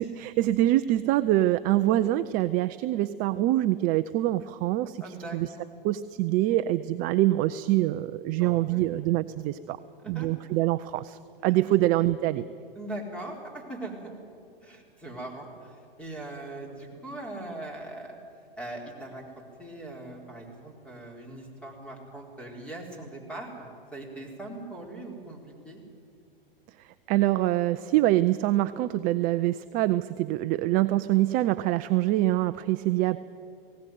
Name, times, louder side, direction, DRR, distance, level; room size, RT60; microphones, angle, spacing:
voice 1, 0.0-5.5 5.8-9.8 10.1-12.4 27.1-33.2, right 15 dB, 30° right, 13 dB, 0.5 m, -25 dB
voice 2, 5.0-5.7 8.4-9.0 10.0-10.3 11.5-11.8 12.7-14.1 14.6-18.2 18.6-25.8, right 2 dB, 5° left, 0 dB, 4.3 m, -41 dB
19.5 x 17.5 x 9.3 m, 2.4 s
hypercardioid pair, 125°, 29 cm